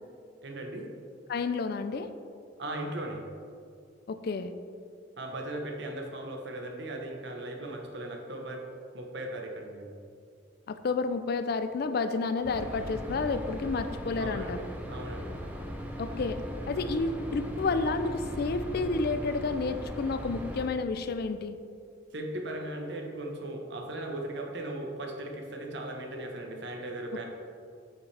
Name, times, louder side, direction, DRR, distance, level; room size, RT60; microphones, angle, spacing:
voice 1, 0.4-0.9 2.6-3.2 5.2-8.6 8.9-9.9 14.2-15.4 22.1-27.2, right 1 dB, 60° right, 2 dB, 1.0 m, -38 dB
voice 2, 1.3-2.1 4.1-4.5 10.7-14.6 16.0-16.4 16.7-21.6 27.1-27.2, left 4 dB, 55° left, 10 dB, 0.4 m, -30 dB
sound 1, 12.4-20.7, equal, 10° right, 0.7 m, -38 dB
8.9 x 6.2 x 3.3 m, 2.3 s
head